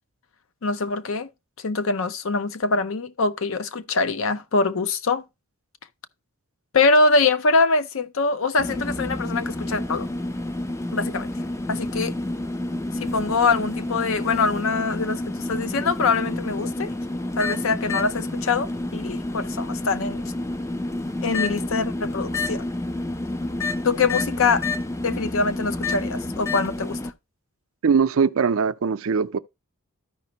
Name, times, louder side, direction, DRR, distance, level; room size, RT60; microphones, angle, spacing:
voice 1, 0.6-1.3 1.6-5.2 6.7-10.1 10.9-11.3 11.7-12.2 12.9-16.9 17.4-20.2 21.2-22.7 23.8-24.6 25.0-27.0, left 4 dB, 65° left, 0.6 m, -23 dB
sound 1, 8.6-27.1, left 2 dB, 15° left, 0.4 m, -29 dB
voice 2, 27.8-29.4, right 5 dB, 70° right, 0.5 m, -21 dB
13.0 x 5.1 x 2.9 m
head